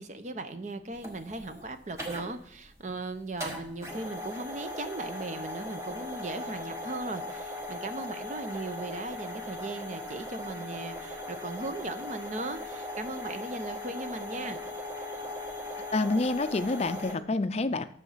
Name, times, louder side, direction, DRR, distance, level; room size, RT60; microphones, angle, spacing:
voice 1, 0.0-14.6, right 2 dB, 45° right, 9 dB, 0.7 m, -38 dB
sound 1, 0.9-17.2, left 1 dB, 15° right, 1.4 m, -39 dB
voice 2, 15.9-17.8, left 2 dB, 35° left, 11 dB, 0.4 m, -28 dB
10.5 x 7.0 x 5.6 m, 0.70 s
head